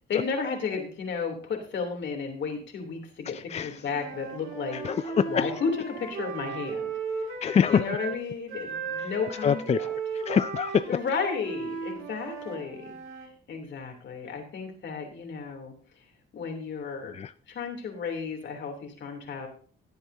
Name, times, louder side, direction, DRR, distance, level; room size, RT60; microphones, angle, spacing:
voice 1, 0.1-4.8 5.3-6.9 7.7-9.6 10.9-13.0 13.5-15.7 16.3-17.1 17.5-19.5, left 5 dB, 65° left, 3.1 m, -33 dB
voice 2, 3.3-3.8 4.7-5.5 7.4-7.9 9.0-9.1 9.4-10.9 17.1-17.3, left 7 dB, 35° left, 0.4 m, -26 dB
Wind instrument woodwind instrument, 3.8-8.2 8.5-13.3, right 5 dB, 85° right, 2.4 m, -36 dB
17.5 x 8.1 x 2.8 m
cardioid pair, 90°, 20 cm